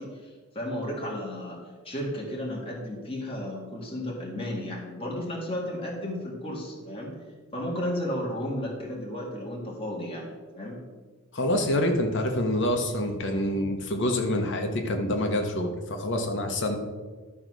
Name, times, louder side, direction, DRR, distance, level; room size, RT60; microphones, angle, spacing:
voice 1, 0.0-1.6 1.8-7.1 7.5-10.8, left 1 dB, 25° left, -3 dB, 1.8 m, -33 dB
voice 2, 11.3-16.8, left 1 dB, 55° left, 4 dB, 1.0 m, -26 dB
12.0 x 3.9 x 6.1 m, 1.4 s
head